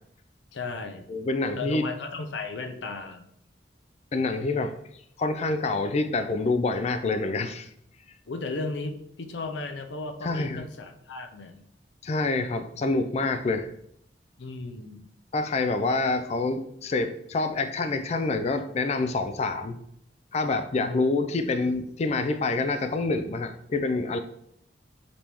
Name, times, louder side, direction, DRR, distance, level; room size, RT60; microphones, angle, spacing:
voice 1, 0.5-1.1 1.6-3.2 8.3-11.7 14.4-15.1 20.8-21.0, left 3 dB, 85° left, 7 dB, 0.5 m, -35 dB
voice 2, 1.1-1.8 4.1-4.7 5.2-7.7 10.2-10.7 12.0-13.7 15.3-19.8 20.3-24.2, left 3 dB, 35° left, 8 dB, 0.3 m, -27 dB
5.1 x 3.4 x 3.0 m, 0.71 s
head